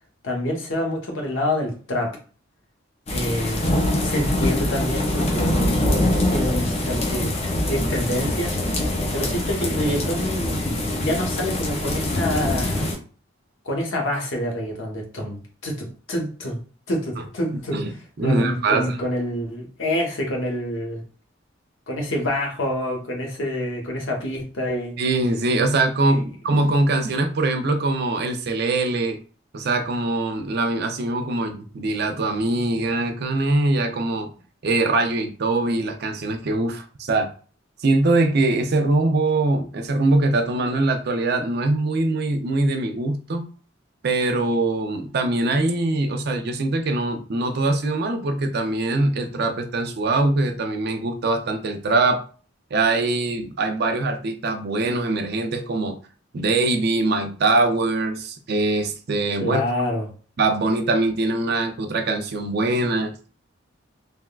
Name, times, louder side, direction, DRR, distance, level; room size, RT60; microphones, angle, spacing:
voice 1, 0.2-2.2 3.1-7.3 7.7-12.9 13.6-16.6 16.9-18.0 18.2-21.0 21.9-24.9 26.1-26.2 59.4-60.1, left 1 dB, 80° left, 0 dB, 0.9 m, -27 dB
sound 1, 3.1-12.9, left 1 dB, 35° left, 0.5 m, -24 dB
voice 2, 18.2-18.9 25.0-29.2 29.5-34.3 34.6-37.3 37.8-43.4 44.0-52.2 52.7-56.0 56.3-59.6 60.4-63.1, right 2 dB, 55° right, 5 dB, 0.5 m, -22 dB
3.4 x 2.2 x 2.3 m, 0.39 s
head